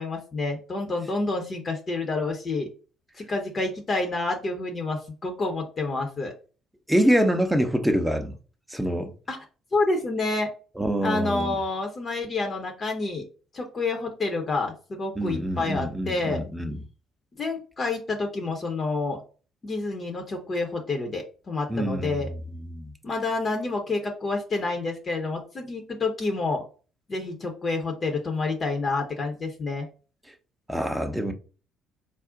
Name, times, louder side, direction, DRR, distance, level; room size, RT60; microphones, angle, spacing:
voice 1, 0.0-2.7 3.3-6.3 9.3-9.4 9.7-10.5 11.0-13.2 13.5-16.4 17.4-19.2 19.6-22.3 23.0-26.6 27.1-29.9, left 3 dB, 35° left, 0.7 m, -28 dB
voice 2, 6.9-8.4 8.7-9.1 10.8-11.6 15.2-16.8 21.7-22.2 22.7-22.9 30.7-31.3, equal, 5° right, 0.6 m, -25 dB
2.4 x 2.0 x 3.8 m
figure-of-eight pair, 50°, 0 cm